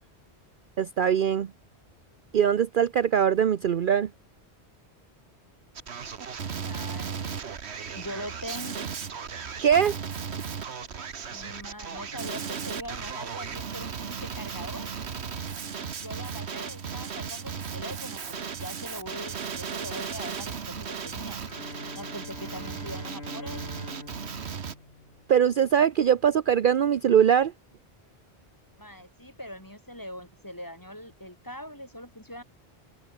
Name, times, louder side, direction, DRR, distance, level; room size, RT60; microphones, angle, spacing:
voice 1, 0.8-1.5 2.3-4.1 9.6-9.9 25.3-27.5, right 8 dB, 55° right, 0.8 m, -22 dB
Male speech man speaking, 5.8-24.8, right 6 dB, 80° right, 1.5 m, -36 dB
voice 2, 6.5-7.4 7.9-8.9 11.3-14.9 16.0-21.4 22.0-23.6 28.8-32.4, equal, 20° left, 7.8 m, -42 dB
Bowed string instrument, 21.4-25.5, left 2 dB, 70° left, 5.9 m, -43 dB
open air
omnidirectional pair, 1.1 m